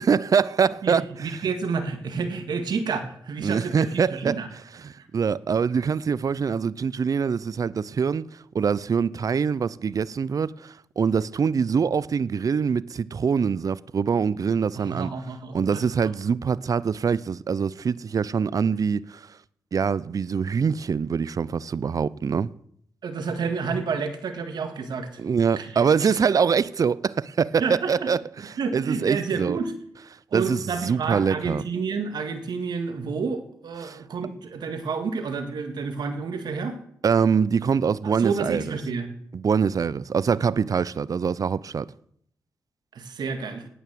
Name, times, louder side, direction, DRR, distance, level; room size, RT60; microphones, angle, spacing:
voice 1, 0.0-1.0 3.4-4.4 4.8-8.3 8.5-15.1 15.5-19.3 19.7-22.5 25.2-29.6 30.3-31.6 33.8-34.0 37.0-38.8 39.3-41.9, right 6 dB, 50° right, 0.5 m, -24 dB
voice 2, 0.8-4.5 5.0-5.1 14.7-15.8 23.0-25.2 25.6-26.1 27.6-28.1 28.6-29.7 30.3-36.8 38.0-39.1 42.9-43.7, right 5 dB, 70° right, 1.7 m, -30 dB
11.0 x 9.2 x 7.4 m
supercardioid pair, 45°, 8 cm